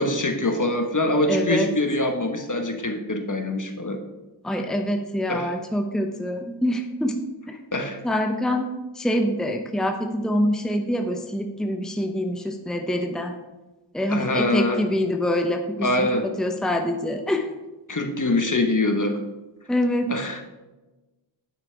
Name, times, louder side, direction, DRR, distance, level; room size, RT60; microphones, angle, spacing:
voice 1, 0.0-4.0 4.5-4.6 5.3-5.5 7.7-8.0 14.1-14.8 15.8-16.3 17.9-19.2 20.1-20.4, left 2 dB, 40° left, 5 dB, 1.3 m, -24 dB
voice 2, 1.3-1.7 4.4-7.6 8.0-8.7 9.0-13.3 13.9-16.1 16.4-17.5 19.7-20.1, left 1 dB, ahead, 4 dB, 0.9 m, -25 dB
10.0 x 5.9 x 4.5 m, 1.1 s
cardioid pair, 50°, 47 cm